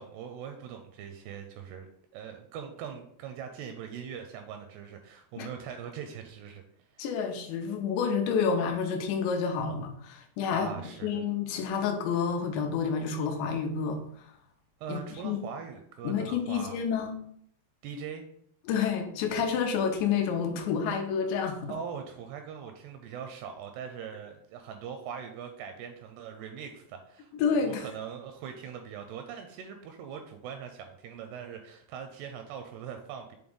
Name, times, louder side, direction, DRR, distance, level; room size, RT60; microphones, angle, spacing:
voice 1, 0.0-7.1 10.5-11.1 14.8-16.8 17.8-18.2 21.7-33.4, right 7 dB, 85° right, 5 dB, 2.4 m, -41 dB
voice 2, 7.0-10.7 11.0-14.3 14.9-15.4 16.0-17.2 18.7-21.7 27.3-27.9, left 6 dB, 80° left, 4 dB, 3.0 m, -29 dB
7.8 x 3.7 x 3.7 m, 0.67 s
omnidirectional pair, 5.2 m